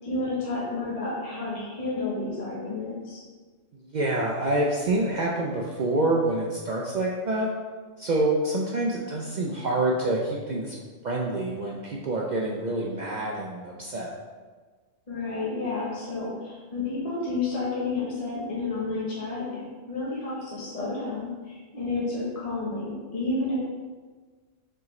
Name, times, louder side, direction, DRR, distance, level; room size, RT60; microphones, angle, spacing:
voice 1, 0.0-3.2 15.1-23.6, left 3 dB, 35° left, -7 dB, 0.9 m, -31 dB
voice 2, 3.9-7.5 8.0-10.8 11.0-14.1, right 2 dB, 70° right, -3 dB, 0.4 m, -27 dB
4.7 x 3.6 x 3.1 m, 1.4 s
omnidirectional pair, 1.3 m